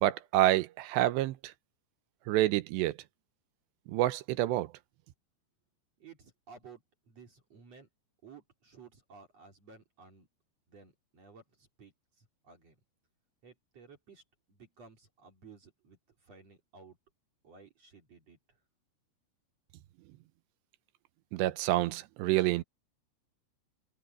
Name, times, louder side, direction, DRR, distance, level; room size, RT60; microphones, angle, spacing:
voice 1, 0.0-1.5 2.3-3.0 3.9-4.7 21.3-22.6, right 15 dB, 80° right, 2.8 m, -28 dB
voice 2, 6.0-7.9 8.2-10.3 10.7-11.9 12.2-12.7 13.4-14.2 14.5-17.0 17.4-18.4, right 5 dB, 40° right, 3.7 m, -55 dB
omnidirectional pair, 5.1 m